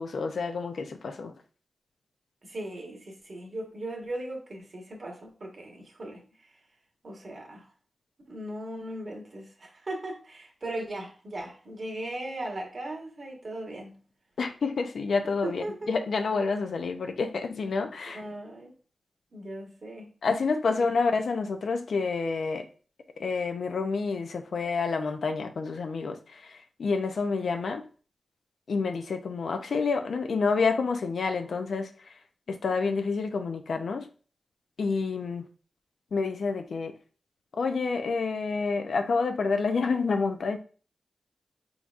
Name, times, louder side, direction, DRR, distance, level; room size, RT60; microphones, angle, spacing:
voice 1, 0.0-1.3 14.4-18.2 20.2-22.7 23.2-27.8 28.7-31.9 32.5-34.1 34.8-35.4 36.1-36.9 37.5-40.6, left 4 dB, 75° left, 0.6 m, -28 dB
voice 2, 2.4-6.2 7.0-7.7 8.3-14.0 15.4-15.9 18.1-18.7 19.3-20.1, right 1 dB, 55° right, 1.5 m, -38 dB
4.6 x 3.9 x 2.5 m
cardioid pair, 65°, 0 cm